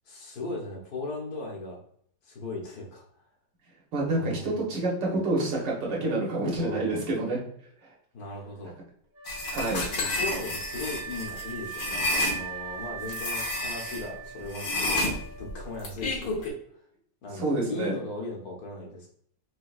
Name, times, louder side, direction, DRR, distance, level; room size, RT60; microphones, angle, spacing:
voice 1, 0.1-1.8 2.2-3.0 4.2-4.6 6.6-7.1 8.1-8.7 10.0-16.5 17.2-19.1, left 2 dB, 65° left, -1 dB, 1.5 m, -38 dB
voice 2, 3.9-7.4 9.5-9.8 17.3-18.0, right 2 dB, 75° right, -2 dB, 1.9 m, -28 dB
Wind instrument woodwind instrument, 9.1-16.1, right 7 dB, 35° right, 0.7 m, -41 dB
sound 1, 9.3-12.4 13.1-14.0 14.5-16.5, left 2 dB, 90° left, 1.7 m, -30 dB
4.8 x 3.5 x 2.4 m, 0.65 s
omnidirectional pair, 1.9 m